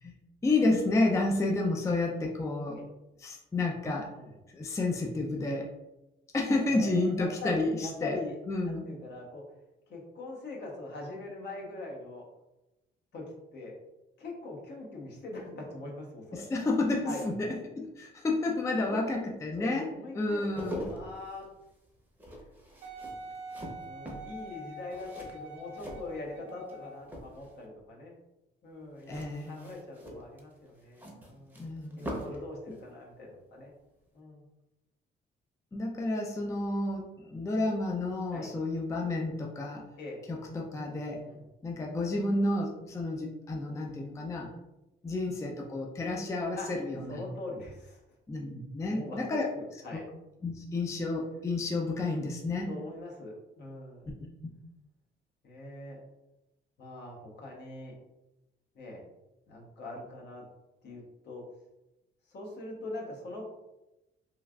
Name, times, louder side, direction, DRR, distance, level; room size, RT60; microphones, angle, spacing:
voice 1, 0.4-2.8 3.2-4.1 4.5-5.7 6.3-8.2 8.5-8.8 16.3-17.5 17.8-19.9 20.1-20.8 29.1-29.6 31.6-32.1 35.7-39.8 40.3-41.2 41.6-44.5 45.0-47.2 48.3-49.5 50.4-52.7, left 2 dB, 15° left, -1 dB, 0.4 m, -30 dB
voice 2, 6.4-8.4 8.6-9.4 9.9-12.3 13.1-13.2 13.5-13.8 14.2-16.5 17.0-17.3 18.7-19.0 19.6-21.4 23.8-28.1 28.6-31.7 32.0-33.7 34.1-34.4 38.3-38.5 40.0-40.2 41.2-41.4 46.6-46.7 47.1-48.0 48.9-50.0 52.7-54.1 55.4-56.0 56.8-57.9 58.7-59.0 59.5-60.4 60.8-61.4 62.3-63.5, left 2 dB, 60° left, -2 dB, 0.9 m, -42 dB
sound 1, 20.3-26.7 27.0-27.7 29.0-32.5 32.7-32.9, equal, 10° right, 0.7 m, -43 dB
Wind instrument woodwind instrument, 22.8-27.1 27.8-27.9, equal, 70° right, 0.5 m, -44 dB
3.1 x 2.4 x 2.3 m, 0.97 s
cardioid pair, 90°, 20 cm